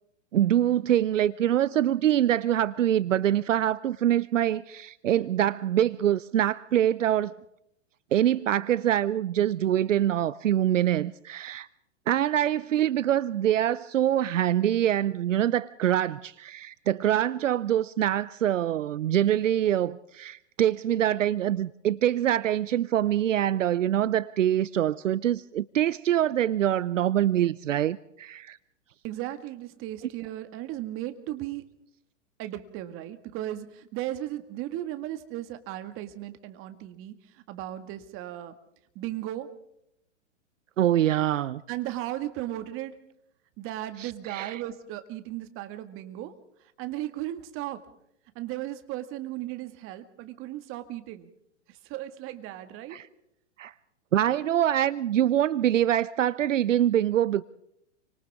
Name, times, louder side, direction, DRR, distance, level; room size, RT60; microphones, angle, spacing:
voice 1, 0.3-7.4 8.1-11.7 12.1-28.6 40.8-41.6 44.0-44.6 52.9-53.1 53.6-53.7 54.1-57.4, right 11 dB, 80° right, 0.7 m, -24 dB
voice 2, 29.0-31.7 32.4-38.5 39.0-39.5 41.7-43.0 43.6-46.3 46.8-47.9 48.4-51.3 51.7-53.0, right 14 dB, 35° right, 2.0 m, -36 dB
29.5 x 25.0 x 3.6 m
hypercardioid pair, 115°, 37 cm